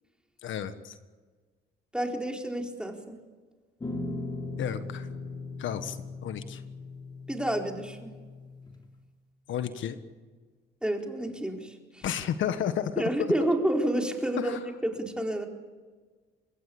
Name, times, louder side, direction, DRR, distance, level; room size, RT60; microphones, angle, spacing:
voice 1, 0.4-1.0 4.6-5.1 5.6-6.6 9.5-10.0 12.0-13.3 14.4-14.6, left 9 dB, 75° left, 10 dB, 1.5 m, -32 dB
voice 2, 1.9-3.2 7.3-8.2 10.8-12.0 13.0-15.5, right 1 dB, 5° right, 2 dB, 4.3 m, -29 dB
sound 1, 3.8-8.8, left 2 dB, 20° left, 3.6 m, -39 dB
25.5 x 21.5 x 8.6 m, 1.4 s
cardioid pair, 90°, 20 cm